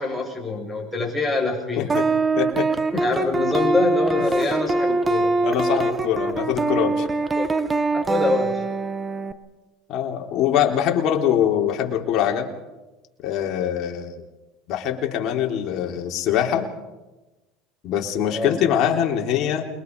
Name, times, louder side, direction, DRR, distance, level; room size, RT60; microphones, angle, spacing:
voice 1, 0.0-2.0 2.9-5.4 7.4-7.5 7.9-8.6 18.3-18.6, left 2 dB, 5° left, 0 dB, 7.5 m, -25 dB
sound 1, 1.9-9.3, right 3 dB, 20° right, 1.4 m, -23 dB
voice 2, 2.4-2.7 5.4-7.1 9.9-12.5 13.2-14.2 14.7-16.7 17.8-19.7, left 9 dB, 55° left, 1 dB, 3.5 m, -23 dB
28.5 x 22.5 x 4.8 m, 1.1 s
supercardioid pair, 105°, 0 cm